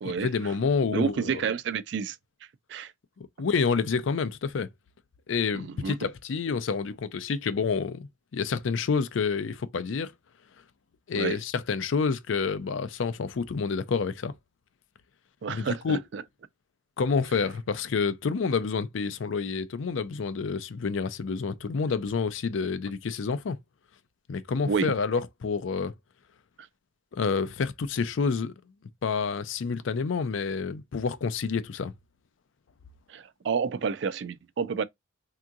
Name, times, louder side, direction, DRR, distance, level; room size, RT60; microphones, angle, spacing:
voice 1, 0.0-1.4 3.2-4.7 5.3-10.1 11.1-14.3 15.5-16.0 17.0-23.6 24.3-25.9 27.1-28.5 29.0-31.9, left 5 dB, 75° left, 0.4 m, -28 dB
voice 2, 0.9-2.2 2.7-2.9 5.5-6.1 11.1-11.4 15.4-16.2 24.7-24.9 33.1-34.8, right 6 dB, 60° right, 0.3 m, -30 dB
3.5 x 2.8 x 2.3 m
head